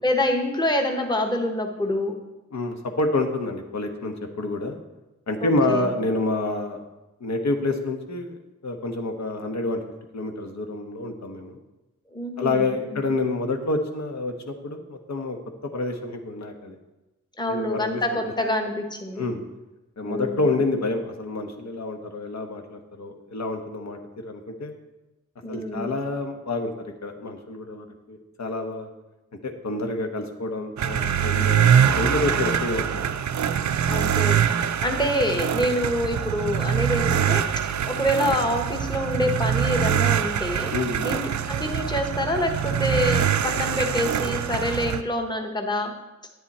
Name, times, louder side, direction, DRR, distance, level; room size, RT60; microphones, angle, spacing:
voice 1, 0.0-2.2 5.4-5.9 12.1-13.1 17.4-19.2 20.0-20.5 25.4-25.9 33.9-40.7 41.0-41.2 41.5-45.9, left 1 dB, 15° left, 3 dB, 1.1 m, -26 dB
voice 2, 2.5-4.8 5.3-6.8 7.2-9.8 10.1-11.6 12.4-15.4 15.6-16.7 17.5-18.0 19.2-19.4 20.0-24.0 24.2-24.7 25.5-28.9 29.4-33.1 40.7-41.1, left 2 dB, 65° left, 4 dB, 1.2 m, -28 dB
sound 1, 30.8-45.0, right 8 dB, 70° right, 0.5 m, -24 dB
10.5 x 9.7 x 4.2 m, 1.0 s
wide cardioid pair, 150°, 30 cm